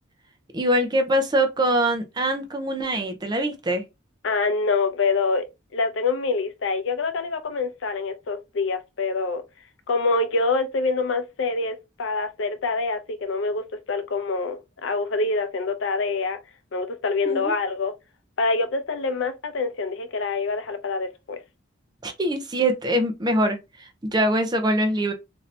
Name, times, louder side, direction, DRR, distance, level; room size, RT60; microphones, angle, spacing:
voice 1, 0.5-3.8 17.3-17.5 22.0-25.1, right 1 dB, 20° right, 0.5 m, -23 dB
voice 2, 4.2-5.5 5.7-9.4 9.9-16.4 16.7-17.9 18.4-21.4, left 3 dB, 70° left, 0.5 m, -25 dB
2.7 x 2.6 x 3.2 m
head